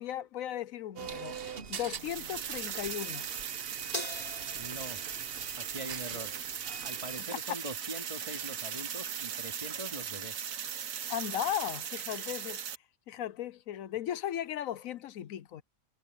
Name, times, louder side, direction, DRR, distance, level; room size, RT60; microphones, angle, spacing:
voice 1, 0.0-3.3 11.1-12.6 13.1-15.6, left 11 dB, 85° left, 1.1 m, -36 dB
sound 1, 1.0-7.2, right 7 dB, 50° right, 1.1 m, -45 dB
sound 2, 1.9-12.8, right 8 dB, 80° right, 1.5 m, -38 dB
Crash cymbal, 3.9-6.5, equal, 30° left, 4.1 m, -43 dB
voice 2, 4.5-5.0 5.5-6.3 6.8-10.5, right 1 dB, 25° right, 3.5 m, -43 dB
omnidirectional pair, 1.4 m